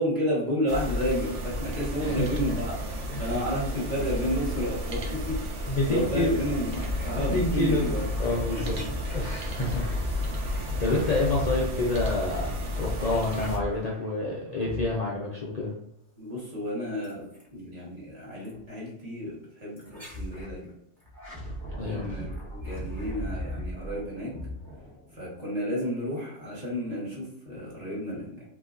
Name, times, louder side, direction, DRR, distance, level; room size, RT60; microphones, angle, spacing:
voice 1, 0.0-5.4 5.9-8.1 8.5-8.6 16.2-20.7 21.8-22.3 22.6-24.4 25.1-28.4, equal, 30° right, -6 dB, 1.3 m, -31 dB
sound 1, 0.7-13.6, left 1 dB, 70° right, 0.9 m, -32 dB
voice 2, 2.0-2.4 3.1-3.2 5.7-6.3 7.2-8.8 9.1-9.9 10.3-12.5 12.8-15.7 21.8-22.0, left 2 dB, 55° left, -3 dB, 0.4 m, -28 dB
sound 2, 6.7-14.2 14.6-15.3 17.0-17.5 18.4-18.6 19.8-20.6 21.0-25.4, equal, ahead, 0.9 m, -38 dB
3.0 x 2.7 x 2.5 m, 0.79 s
omnidirectional pair, 1.3 m